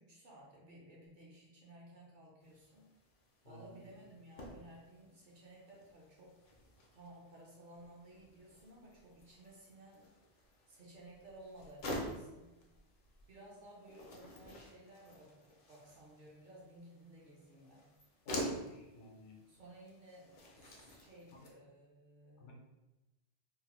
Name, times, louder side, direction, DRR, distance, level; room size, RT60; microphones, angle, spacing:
voice 1, 0.0-2.9 3.4-6.4 6.9-10.1 10.7-12.6 13.3-17.9 19.5-22.5, right 1 dB, 55° right, -3 dB, 0.6 m, -57 dB
sound 1, 2.4-21.5, equal, 60° left, 0.4 m, -49 dB
voice 2, 3.4-4.0 18.2-19.4 21.3-21.5 22.4-22.5, left 1 dB, 90° left, -1 dB, 0.9 m, -54 dB
2.8 x 2.1 x 2.9 m, 1.0 s
omnidirectional pair, 1.2 m